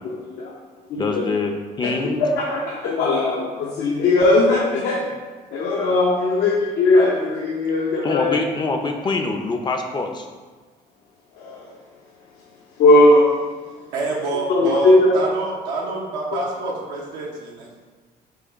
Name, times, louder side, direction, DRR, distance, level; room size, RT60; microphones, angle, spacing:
voice 1, 0.0-0.5 0.9-1.3 1.8-1.9 2.2-5.0 5.5-8.3 11.4-11.6 12.8-13.3 14.5-15.1, left 2 dB, 75° left, -3 dB, 0.7 m, -18 dB
voice 2, 0.9-1.5 1.8-2.2 8.0-10.3, left 3 dB, 25° left, 4 dB, 0.4 m, -24 dB
voice 3, 13.9-17.8, right 3 dB, 85° right, -3 dB, 0.7 m, -27 dB
4.7 x 2.3 x 4.5 m, 1.4 s
cardioid pair, 110°, 17 cm